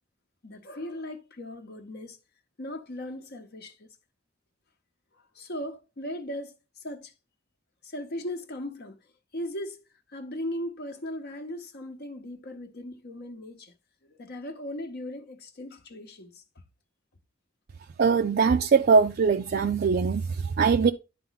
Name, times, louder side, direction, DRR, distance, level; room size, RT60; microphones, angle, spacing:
voice 1, 0.4-2.2 2.6-3.9 5.1-7.1 7.8-9.0 9.3-9.8 10.1-13.7 14.0-16.4, left 1 dB, 60° left, 0.8 m, -38 dB
voice 2, 18.0-20.9, right 5 dB, 55° right, 0.4 m, -22 dB
11.0 x 4.0 x 4.0 m
head